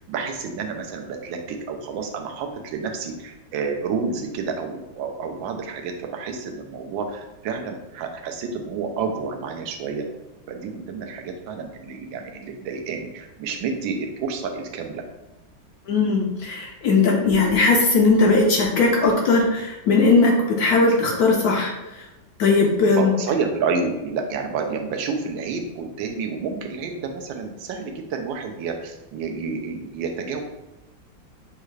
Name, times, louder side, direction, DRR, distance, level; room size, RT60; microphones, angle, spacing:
voice 1, 0.1-10.1 10.5-15.0 22.8-30.4, right 5 dB, 85° right, 4 dB, 1.4 m, -29 dB
voice 2, 15.9-22.1 22.4-23.1, left 3 dB, 70° left, 0 dB, 1.0 m, -19 dB
6.5 x 2.4 x 3.2 m, 1.0 s
omnidirectional pair, 2.1 m